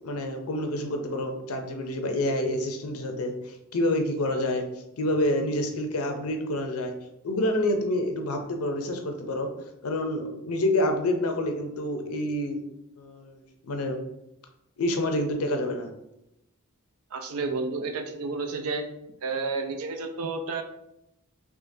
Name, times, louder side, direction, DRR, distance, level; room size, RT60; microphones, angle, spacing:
voice 1, 0.0-4.6 5.0-6.9 7.2-9.5 9.8-12.6 13.0-14.0 14.8-15.9, left 1 dB, 85° left, 4 dB, 0.6 m, -28 dB
voice 2, 17.1-18.8 19.2-20.6, right 4 dB, 85° right, 5 dB, 0.5 m, -31 dB
3.6 x 3.2 x 2.6 m, 0.86 s
head